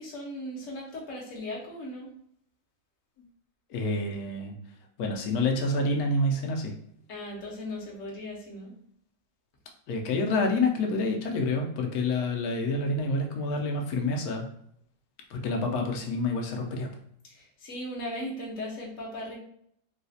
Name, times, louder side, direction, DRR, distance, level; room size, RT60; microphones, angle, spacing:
voice 1, 0.0-2.1 7.1-8.7 17.2-19.3, left 1 dB, 50° left, -3 dB, 1.1 m, -37 dB
voice 2, 3.7-4.6 5.0-6.7 9.9-14.5 15.3-16.9, left 2 dB, 70° left, 2 dB, 0.9 m, -28 dB
4.0 x 2.4 x 2.6 m, 0.69 s
omnidirectional pair, 2.1 m